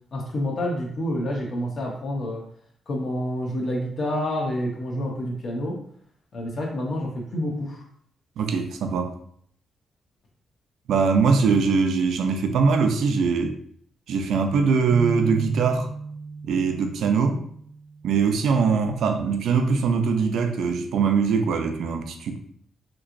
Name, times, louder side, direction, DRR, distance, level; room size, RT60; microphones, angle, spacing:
voice 1, 0.1-2.4 2.9-5.8 6.3-7.8 11.5-11.6, left 1 dB, 45° left, -1 dB, 0.6 m, -28 dB
voice 2, 8.4-9.1 10.9-13.6 14.1-15.9 16.4-17.4 18.0-22.4, right 5 dB, 85° right, 6 dB, 0.4 m, -22 dB
sound 1, 14.9-18.4, right 4 dB, 20° right, 0.5 m, -35 dB
3.4 x 3.0 x 2.5 m, 0.63 s
wide cardioid pair, 155°, 0 cm